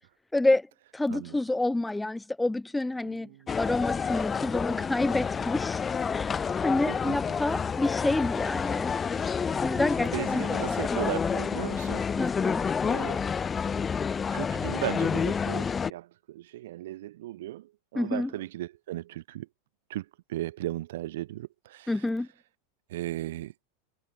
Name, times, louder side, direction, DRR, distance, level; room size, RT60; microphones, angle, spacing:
voice 1, 0.3-0.7 0.9-3.3 3.6-5.8 6.1-8.9 9.6-11.0 12.2-12.6 17.9-18.3 21.9-22.3, left 2 dB, 5° left, 1.6 m, -28 dB
voice 2, 3.0-3.5 6.9-7.2 9.7-12.0 12.8-13.2 14.3-19.5 19.9-21.9 22.9-23.5, right 15 dB, 65° right, 4.1 m, -36 dB
sound 1, 3.5-15.9, left 6 dB, 20° left, 1.4 m, -29 dB
hypercardioid pair, 90°, 0 cm